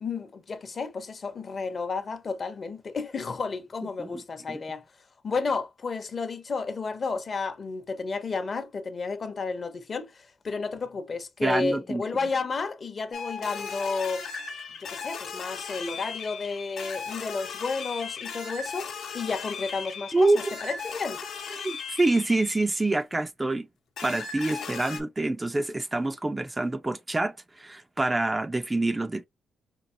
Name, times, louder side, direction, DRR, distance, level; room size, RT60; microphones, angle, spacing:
voice 1, 0.0-4.8 5.2-14.3 14.8-21.2 24.6-24.7, left 4 dB, 40° left, 0.7 m, -32 dB
voice 2, 11.4-12.1 20.1-20.5 21.6-23.7 24.0-29.3, right 2 dB, 15° right, 0.3 m, -26 dB
sound 1, 13.1-22.8 24.0-25.0, left 5 dB, 70° left, 0.9 m, -37 dB
4.6 x 2.3 x 2.6 m
cardioid pair, 100°, 0 cm